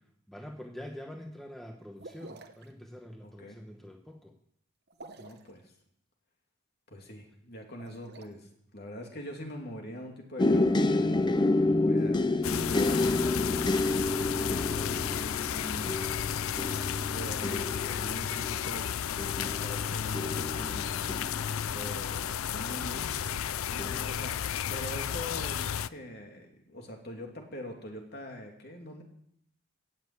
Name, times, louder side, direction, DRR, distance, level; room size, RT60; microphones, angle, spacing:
voice 1, 0.3-4.3, left 1 dB, ahead, 2 dB, 1.0 m, -45 dB
sound 1, 2.0-2.7 4.9-5.5 7.6-8.3, right 2 dB, 50° right, 1.1 m, -48 dB
voice 2, 3.2-3.6 5.2-5.7 6.9-13.8 14.7-15.9 16.9-19.0 19.4-21.0 21.7-23.1 23.6-29.0, left 1 dB, 50° left, 1 dB, 2.8 m, -43 dB
sound 2, 10.4-22.3 22.9-23.4 23.8-24.0, left 2 dB, 20° left, 0.5 m, -29 dB
sound 3, 12.4-25.9, left 9 dB, 80° left, 0.4 m, -33 dB
16.5 x 7.5 x 8.3 m, 0.71 s
head